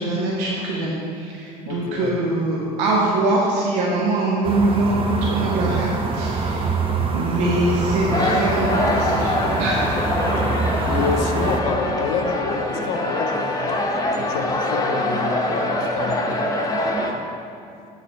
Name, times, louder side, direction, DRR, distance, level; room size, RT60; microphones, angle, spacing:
voice 1, 0.0-5.9 6.1-10.1, right 2 dB, 60° right, -3 dB, 0.9 m, -23 dB
voice 2, 1.7-2.2 6.9-7.0 10.2-10.5 10.9-13.8 14.2-16.4, left 6 dB, 65° left, 5 dB, 0.6 m, -28 dB
sound 1, 4.4-11.6, right 4 dB, 30° right, 0.8 m, -24 dB
sound 2, 8.1-17.1, left 1 dB, 20° left, 0.9 m, -24 dB
7.3 x 4.1 x 4.2 m, 2.5 s
figure-of-eight pair, 65°, 19 cm